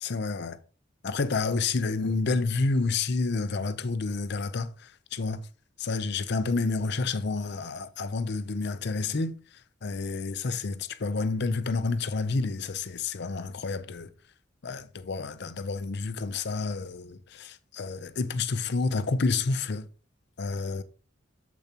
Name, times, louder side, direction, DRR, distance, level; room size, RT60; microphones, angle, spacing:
voice 1, 0.0-0.6 1.0-5.4 5.8-9.4 9.8-14.1 14.6-19.9 20.4-20.8, left 3 dB, 55° left, 0.6 m, -29 dB
7.2 x 6.7 x 2.9 m
head